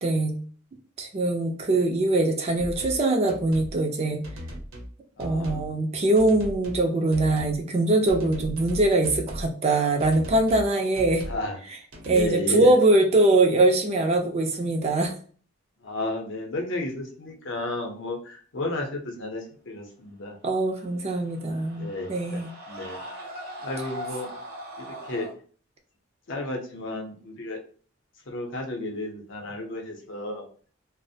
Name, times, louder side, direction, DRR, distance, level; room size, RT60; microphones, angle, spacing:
voice 1, 0.0-0.4 1.0-4.2 5.2-11.2 12.0-15.1 20.4-22.5, right 2 dB, 30° right, 4 dB, 0.4 m, -22 dB
sound 1, 2.6-3.0 3.3-3.8 4.2-4.9 5.2-5.7 6.2-6.8 7.1-7.6 8.1-9.5 10.0-10.7 11.0-11.4 11.9-12.3, equal, 85° right, 0.7 m, -37 dB
voice 2, 5.2-5.7 11.2-11.6 12.1-12.8 15.8-20.4 21.8-22.4 22.7-23.3 23.6-24.3 24.8-25.3 26.3-27.6 28.3-30.5, left 2 dB, 60° left, 2 dB, 0.6 m, -32 dB
sound 2, 20.9-25.3, right 1 dB, 50° right, 0.7 m, -40 dB
2.4 x 2.0 x 2.6 m, 0.43 s
head